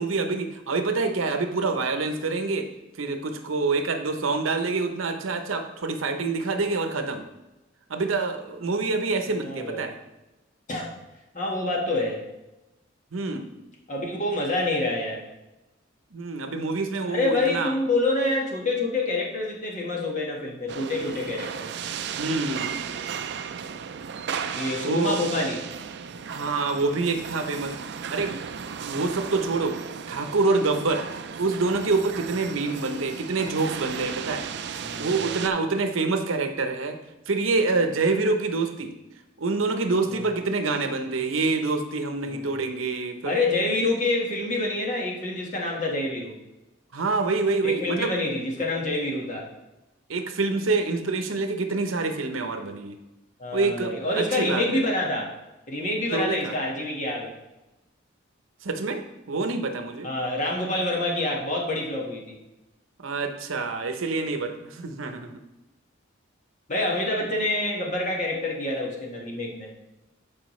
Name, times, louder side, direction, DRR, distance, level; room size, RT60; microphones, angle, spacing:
voice 1, 0.0-2.7 3.0-7.2 7.9-10.0 13.1-13.5 16.1-17.7 22.1-22.8 24.8-25.1 26.3-27.8 28.1-28.3 28.8-29.8 30.1-31.0 31.4-34.4 35.0-37.0 37.3-38.9 39.4-43.4 46.9-48.1 50.1-53.0 53.5-54.8 56.1-56.5 58.6-60.1 63.0-65.3, right 3 dB, 80° right, 6 dB, 0.8 m, -26 dB
voice 2, 9.3-9.8 10.7-10.9 11.3-12.2 13.9-15.2 17.1-21.7 24.5-25.6 34.8-35.5 40.1-40.3 42.3-42.6 43.2-46.3 47.6-49.5 53.4-55.3 55.7-57.3 60.0-62.4 66.7-69.7, left 2 dB, 40° left, -2 dB, 1.5 m, -27 dB
sound 1, 20.7-35.5, right 7 dB, 55° right, 0.4 m, -35 dB
12.0 x 4.9 x 3.2 m, 1.0 s
head